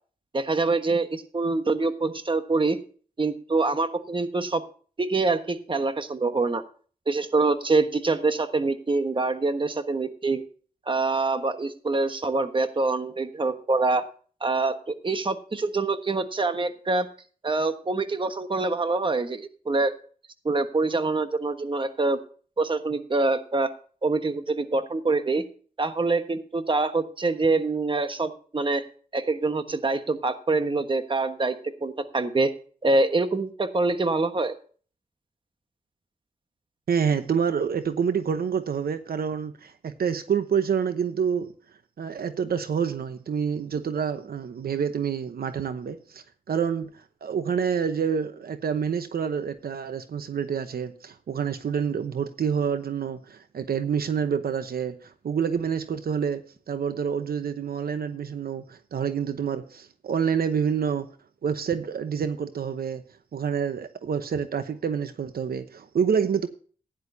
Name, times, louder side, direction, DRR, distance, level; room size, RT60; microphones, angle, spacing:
voice 1, 0.3-2.8 3.2-4.6 5.0-6.6 7.1-10.4 10.9-14.0 14.4-17.1 17.4-19.9 20.4-22.2 22.6-23.7 24.0-25.4 25.8-28.8 29.1-31.6 31.8-32.5 32.8-34.5, right 3 dB, 30° right, 9 dB, 1.3 m, -25 dB
voice 2, 36.9-41.5 42.0-46.9 47.2-61.1 61.4-63.0 63.3-66.5, right 7 dB, 75° right, 10 dB, 0.9 m, -27 dB
15.5 x 10.5 x 2.7 m, 0.42 s
wide cardioid pair, 95°, 16 cm